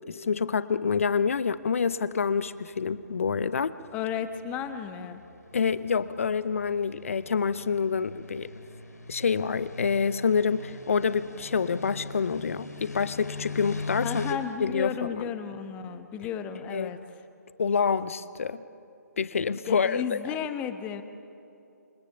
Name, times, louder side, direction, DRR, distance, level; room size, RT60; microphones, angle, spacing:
voice 1, 0.1-3.7 5.5-8.5 9.1-14.3 14.6-15.3 16.7-16.9 17.6-18.6 19.2-20.2, left 6 dB, 50° left, 15 dB, 0.8 m, -27 dB
sound 1, 1.5-14.3, left 3 dB, 70° left, 3.2 m, -42 dB
voice 2, 3.9-5.2 14.0-17.0 19.7-21.0, left 8 dB, 15° left, 9 dB, 1.1 m, -33 dB
28.0 x 24.5 x 7.0 m, 2.6 s
figure-of-eight pair, 140°, 9 cm